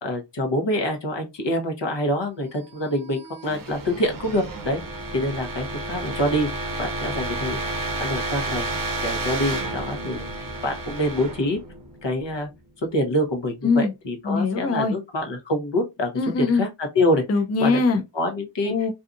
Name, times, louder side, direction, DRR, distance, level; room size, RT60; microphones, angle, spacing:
voice 1, 0.0-4.8 5.1-6.5 6.8-8.7 9.0-11.6 12.0-12.5 12.9-16.1 16.6-16.7 16.9-17.2 17.6-17.8 18.2-18.7, left 1 dB, 70° left, 1.0 m, -26 dB
sound 1, 2.7-12.5, right 2 dB, 50° right, 0.6 m, -31 dB
voice 2, 14.2-15.0 16.2-16.7 17.3-18.0 18.6-18.9, left 4 dB, 35° left, 0.4 m, -21 dB
2.7 x 2.4 x 2.4 m
wide cardioid pair, 40°, 44 cm